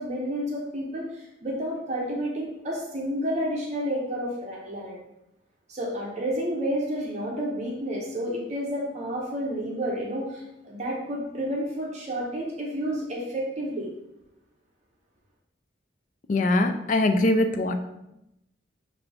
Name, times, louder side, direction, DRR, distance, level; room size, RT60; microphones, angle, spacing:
voice 1, 0.0-5.0 5.7-13.9, equal, 40° right, -2 dB, 0.7 m, -30 dB
voice 2, 16.3-17.7, left 2 dB, 45° left, 7 dB, 0.4 m, -22 dB
5.8 x 2.6 x 3.3 m, 0.87 s
head